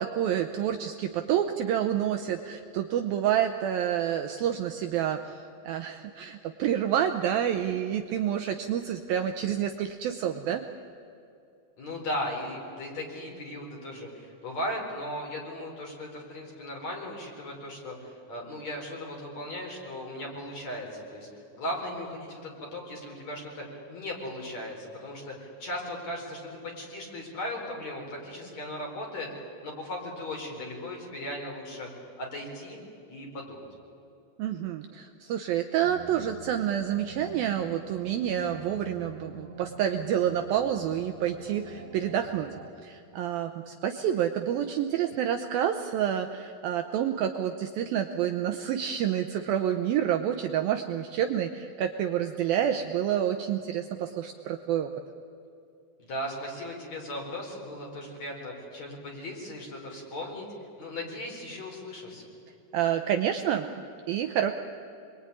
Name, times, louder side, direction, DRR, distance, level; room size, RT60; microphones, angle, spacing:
voice 1, 0.0-10.6 34.4-42.5 42.8-54.9 62.7-63.7 64.1-64.5, right 10 dB, 75° right, 6 dB, 2.3 m, -28 dB
voice 2, 11.8-29.3 29.6-31.9 32.2-32.8 33.1-33.7 56.0-60.5 60.8-62.3, left 1 dB, 40° left, 0 dB, 5.5 m, -37 dB
sound 1, 35.8-42.7, right 4 dB, 50° right, 2.3 m, -46 dB
27.0 x 22.5 x 9.8 m, 2.5 s
omnidirectional pair, 5.0 m